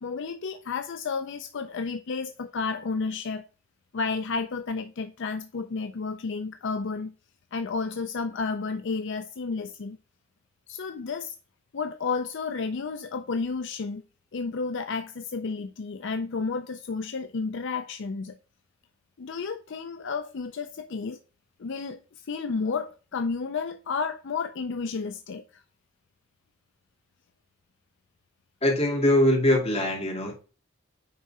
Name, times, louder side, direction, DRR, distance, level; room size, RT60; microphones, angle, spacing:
voice 1, 0.0-3.4 3.9-7.1 7.5-10.0 10.7-11.3 11.7-14.0 14.3-18.4 19.2-21.2 21.6-25.6, left 4 dB, 60° left, 0.5 m, -31 dB
voice 2, 28.6-30.3, left 1 dB, 30° left, 2.7 m, -22 dB
9.5 x 3.7 x 4.7 m
head